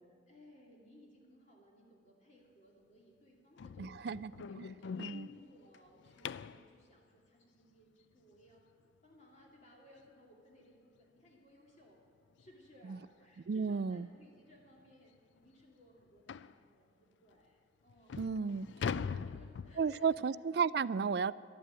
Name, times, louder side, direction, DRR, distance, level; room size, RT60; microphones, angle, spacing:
voice 1, 0.3-4.1 4.5-8.6 9.0-12.0 12.4-20.3 20.7-20.9, equal, 40° left, -2 dB, 2.4 m, -62 dB
sound 1, 3.6-6.7 9.5-9.6 10.1-10.3 10.6-10.7 11.2-11.3 12.4-12.5 12.9-13.1 13.7-13.8 14.2-14.3 14.8-14.9 16.3-16.6 17.3-17.4 17.9-20.2, left 6 dB, 80° left, 0.4 m, -42 dB
voice 2, 3.8-4.3 4.6-4.7 5.0-5.3 12.9-13.0 13.5-14.1 18.2-18.7 19.8-21.3, right 5 dB, 60° right, 18 dB, 0.3 m, -33 dB
12.0 x 11.5 x 8.9 m, 2.1 s
head